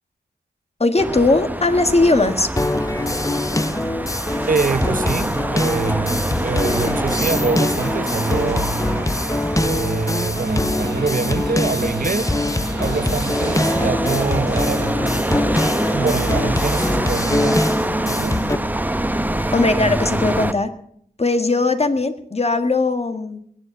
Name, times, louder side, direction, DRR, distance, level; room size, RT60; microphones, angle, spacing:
voice 1, 0.8-2.5 19.5-20.7 21.2-23.4, left 2 dB, 40° left, 1.7 m, -19 dB
sound 1, 1.0-20.5, right 1 dB, 10° right, 0.8 m, -25 dB
sound 2, 2.6-18.6, left 2 dB, 20° left, 0.8 m, -23 dB
voice 2, 4.5-9.0 9.6-12.3 12.8-14.9 15.9-17.6 18.1-18.4, right 4 dB, 55° right, 0.8 m, -25 dB
sound 3, 6.2-20.2, right 5 dB, 80° right, 1.2 m, -37 dB
20.5 x 7.7 x 8.1 m
cardioid pair, 60°, 17 cm